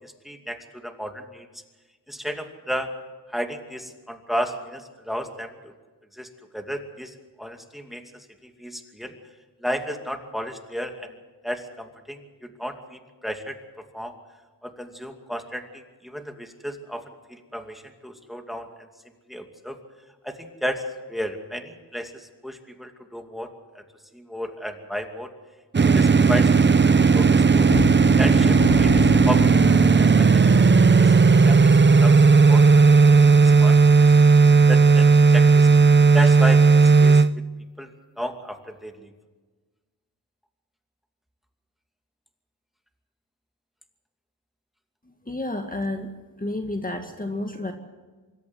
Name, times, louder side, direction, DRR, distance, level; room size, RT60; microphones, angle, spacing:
voice 1, 0.0-1.5 2.1-2.9 3.3-5.7 6.1-9.1 9.6-11.1 11.4-14.1 14.6-18.7 19.3-19.8 20.2-20.8 21.1-23.5 23.7-23.8 24.1-25.3 25.8-27.7 28.2-30.4 30.8-31.1 31.4-33.1 33.4-34.1 34.7-35.7 36.1-37.4 37.8-37.9 38.2-39.1, equal, ahead, 5 dB, 2.5 m, -33 dB
sound 1, 25.7-37.3, right 4 dB, 30° right, 0.6 m, -15 dB
sound 2, 27.7-34.4 34.8-34.9 35.3-35.5 36.0-36.2, left 8 dB, 75° left, 0.8 m, -33 dB
voice 2, 45.0-46.1 46.4-47.7, left 2 dB, 20° left, 4 dB, 2.0 m, -30 dB
25.0 x 13.5 x 8.0 m, 1.3 s
cardioid pair, 60°, 39 cm